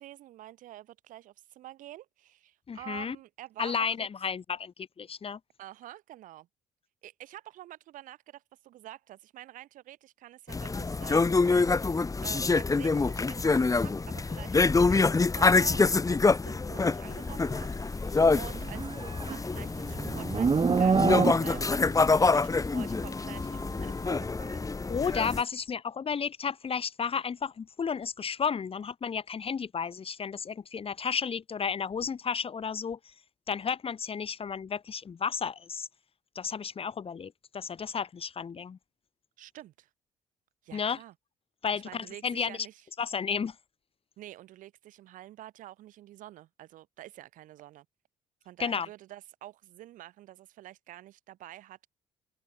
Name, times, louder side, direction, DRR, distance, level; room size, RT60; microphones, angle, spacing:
voice 1, 0.0-4.1 5.6-6.5 7.0-25.0 39.4-39.9 40.6-41.1 41.7-42.9 44.2-47.9 48.4-51.9, right 14 dB, 65° right, 5.9 m, -48 dB
voice 2, 2.7-3.2 3.6-5.4 24.9-33.0 33.5-35.9 36.4-38.8 40.7-41.0 41.6-42.6 43.0-43.5 48.6-48.9, left 6 dB, 40° left, 2.3 m, -32 dB
sound 1, 10.5-25.4, left 3 dB, 25° left, 1.4 m, -26 dB
Livestock farm animals working animals, 18.5-21.8, right 5 dB, 35° right, 2.7 m, -26 dB
open air
hypercardioid pair, 50°, 14 cm